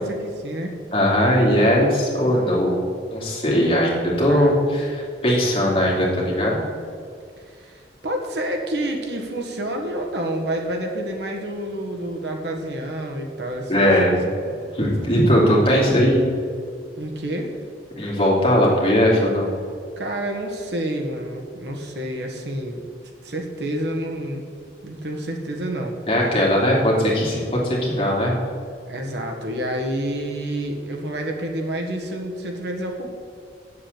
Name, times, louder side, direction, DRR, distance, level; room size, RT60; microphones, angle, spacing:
voice 1, 0.0-0.7 2.1-2.3 4.3-4.6 7.4-14.2 17.0-17.6 20.0-22.8 23.2-24.5 24.8-26.0 28.9-33.1, right 1 dB, 75° right, 1 dB, 1.6 m, -29 dB
voice 2, 0.9-2.8 3.1-6.6 13.7-14.2 14.7-16.3 18.0-19.5 26.1-28.3, equal, 30° left, -4 dB, 2.8 m, -19 dB
8.4 x 7.6 x 8.2 m, 2.3 s
head